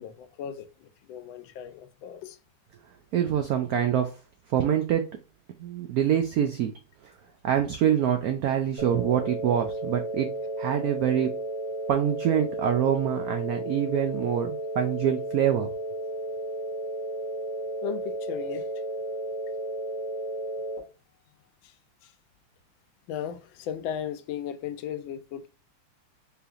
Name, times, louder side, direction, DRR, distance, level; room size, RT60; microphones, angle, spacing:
voice 1, 0.0-2.4 17.8-18.9 21.6-21.8 22.0-22.1 23.1-25.5, left 9 dB, 80° left, 1.3 m, -36 dB
voice 2, 3.1-4.1 4.5-5.1 5.6-6.7 7.0-7.1 7.4-10.3 10.6-11.4 11.9-15.7, right 9 dB, 85° right, 0.8 m, -25 dB
sound 1, 8.8-20.8, right 1 dB, 60° right, 2.1 m, -33 dB
4.7 x 3.4 x 2.4 m
omnidirectional pair, 2.1 m